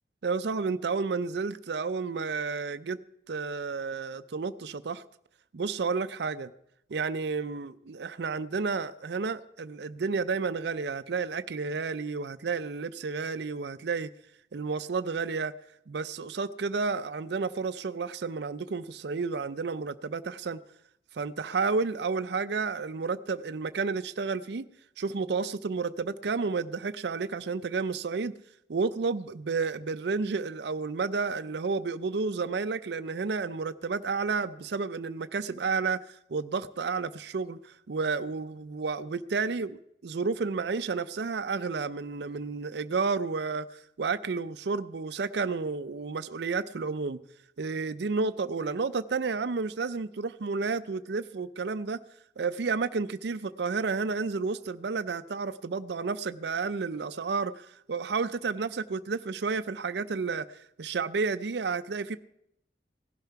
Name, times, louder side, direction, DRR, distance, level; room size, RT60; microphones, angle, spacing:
voice 1, 0.2-3.0 3.3-5.0 5.5-6.5 6.9-14.1 14.5-15.5 15.9-20.6 21.1-24.6 25.0-28.3 28.7-47.2 47.6-52.0 52.4-62.2, right 4 dB, 65° right, 0.5 m, -31 dB
17.0 x 11.5 x 5.8 m
head